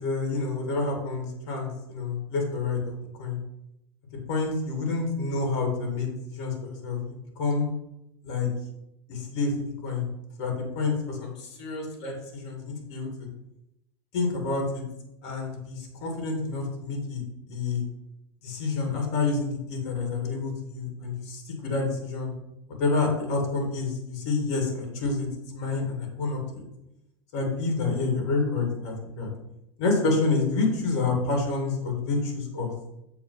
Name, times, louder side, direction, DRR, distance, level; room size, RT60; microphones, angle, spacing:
voice 1, 0.0-3.4 4.3-7.7 8.2-8.5 9.1-9.5 9.8-10.1 10.4-13.3 14.1-14.8 15.2-17.2 17.5-17.8 18.4-22.3 22.8-25.3 25.5-26.6 27.3-29.3 29.8-32.7, left 3 dB, 65° left, 2 dB, 2.5 m, -28 dB
7.5 x 4.4 x 5.7 m, 0.86 s
hypercardioid pair, 90°, 16 cm